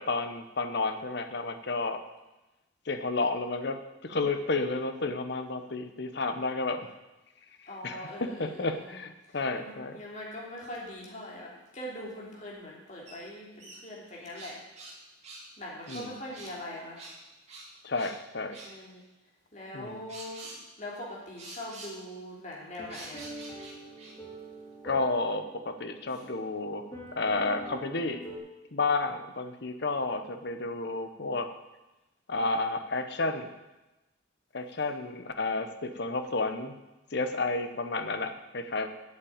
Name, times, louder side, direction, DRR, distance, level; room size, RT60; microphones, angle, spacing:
voice 1, 0.0-2.0 2.8-6.9 7.8-10.0 15.9-16.1 17.8-18.6 19.7-20.0 24.8-26.9 27.1-28.2 28.7-31.5 32.3-33.5 34.5-36.7 37.1-38.9, left 3 dB, 55° left, 8 dB, 0.9 m, -31 dB
voice 2, 7.7-9.0 9.2-14.6 15.6-17.0 18.6-19.0 19.5-23.3 26.1-26.2, left 1 dB, 35° left, -4 dB, 3.0 m, -42 dB
sound 1, 13.1-13.2 13.6-15.0 15.2-15.4 15.9-16.6 17.0-17.2 17.5-18.2 18.5-18.7 20.1-20.6 21.4-21.9 22.9-24.2, right 2 dB, 35° right, 2.5 m, -46 dB
sound 2, 22.8-28.4, right 1 dB, 20° left, 3.3 m, -45 dB
8.2 x 7.5 x 8.8 m, 1.0 s
head